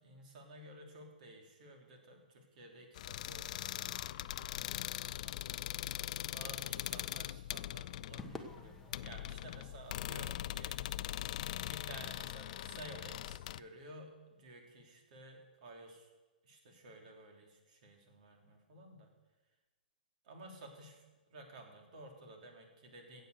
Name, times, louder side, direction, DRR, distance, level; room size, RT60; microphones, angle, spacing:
voice 1, 0.0-10.8 11.6-16.1 16.4-19.1 20.2-21.0 21.3-23.3, right 1 dB, 55° right, 3 dB, 3.4 m, -54 dB
sound 1, 3.0-13.6, left 13 dB, 50° left, 0.4 m, -41 dB
Crowd / Fireworks, 8.2-12.7, left 2 dB, 5° left, 1.2 m, -54 dB
15.0 x 8.3 x 6.7 m, 1.2 s
hypercardioid pair, 130°, 5 cm